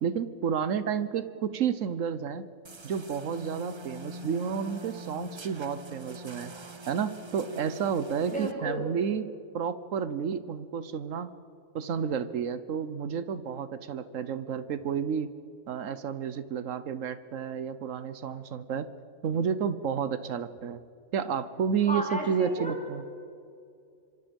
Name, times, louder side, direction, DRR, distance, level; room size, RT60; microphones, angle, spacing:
voice 1, 0.0-2.4 2.8-6.5 6.9-9.3 9.5-11.3 11.7-15.3 15.7-18.9 19.2-20.8 21.1-23.0, right 7 dB, 85° right, 13 dB, 1.3 m, -31 dB
sound 1, 2.6-8.5, right 1 dB, 25° right, 0.7 m, -43 dB
voice 2, 8.2-8.8 21.9-22.8, equal, 5° left, -1 dB, 6.0 m, -33 dB
26.0 x 24.5 x 5.3 m, 2.4 s
omnidirectional pair, 1.3 m